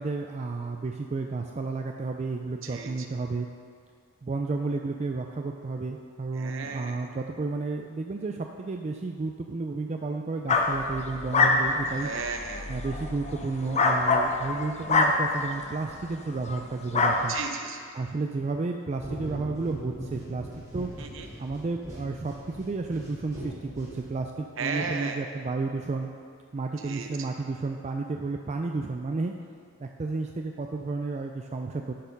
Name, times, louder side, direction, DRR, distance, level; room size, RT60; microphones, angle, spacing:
voice 1, 0.0-3.5 4.2-12.1 12.7-17.4 17.9-20.5 20.7-20.9 21.4-26.1 26.5-29.3 29.8-31.9, right 3 dB, 30° right, 3 dB, 0.3 m, -32 dB
voice 2, 2.6-2.9 6.3-7.1 11.9-12.8 17.3-17.9 21.0-21.3 24.6-25.2 26.8-27.1, right 4 dB, 60° right, 5 dB, 0.7 m, -35 dB
sound 1, 10.5-16.0 16.4-16.6 16.9-17.4, left 3 dB, 30° left, 0.5 m, -26 dB
sound 2, 19.0-24.5, right 1 dB, 15° right, 1.8 m, -41 dB
11.5 x 4.4 x 5.3 m, 2.1 s
head